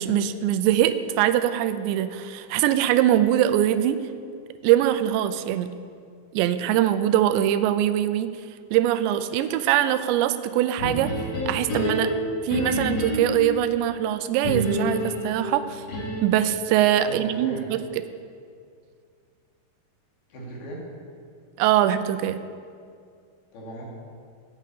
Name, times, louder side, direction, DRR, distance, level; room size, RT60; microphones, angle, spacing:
voice 1, 0.0-4.0 4.6-5.7 6.3-8.3 8.7-11.1 11.5-12.1 12.4-15.8 16.2-17.8 21.6-22.4, right 12 dB, 90° right, 12 dB, 2.8 m, -22 dB
sound 1, 10.8-13.6 14.4-16.4, equal, 45° left, 2.9 m, -27 dB
voice 2, 17.0-17.7 20.3-20.8 23.5-23.8, equal, 65° left, -3 dB, 4.2 m, -37 dB
10.5 x 9.2 x 8.4 m, 2.2 s
omnidirectional pair, 5.0 m